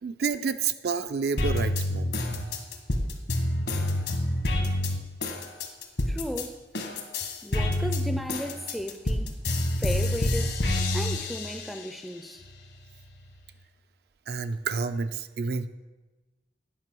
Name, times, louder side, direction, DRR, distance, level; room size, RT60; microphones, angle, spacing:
voice 1, 0.0-2.2 14.3-15.7, right 5 dB, 60° right, 0.4 m, -29 dB
sound 1, 1.4-6.5 6.7-11.9 12.4-13.4, left 1 dB, 70° left, 1.3 m, -28 dB
voice 2, 6.1-6.6 7.4-9.3 9.8-10.6 10.9-12.4, equal, ahead, 0.4 m, -35 dB
9.5 x 5.5 x 6.1 m
head